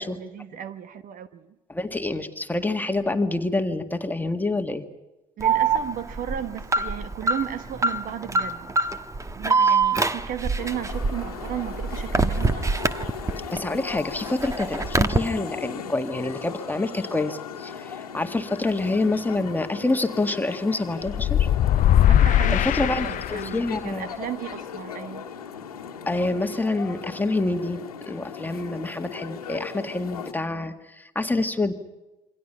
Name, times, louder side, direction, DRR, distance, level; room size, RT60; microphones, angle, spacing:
voice 1, 0.0-1.5 5.4-8.8 9.3-12.8 21.9-25.3, right 10 dB, 45° right, 1.1 m, -35 dB
voice 2, 1.7-4.9 9.6-9.8 13.5-21.5 22.5-24.1 26.1-31.7, left 2 dB, 10° left, 1.9 m, -27 dB
Alarm, 5.4-13.6 14.0-15.2, right 4 dB, 15° right, 1.3 m, -24 dB
sound 1, 10.6-30.3, left 7 dB, 85° left, 1.6 m, -38 dB
sound 2, 21.1-23.7, left 11 dB, 45° left, 0.7 m, -20 dB
27.5 x 24.0 x 5.8 m
figure-of-eight pair, 60°, 19 cm